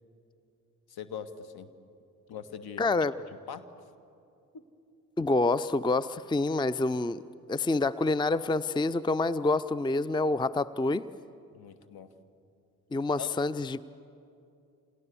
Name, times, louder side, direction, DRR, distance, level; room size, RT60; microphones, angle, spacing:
voice 1, 0.9-1.7 2.3-2.9 3.5-3.8 4.5-4.6 11.5-12.1 13.2-13.3, left 7 dB, 55° left, 10 dB, 1.8 m, -42 dB
voice 2, 2.8-3.1 5.2-7.2 7.5-11.1 12.9-13.9, left 3 dB, 10° left, 17 dB, 0.6 m, -27 dB
28.5 x 28.0 x 7.1 m, 2.6 s
hypercardioid pair, 45°, 43 cm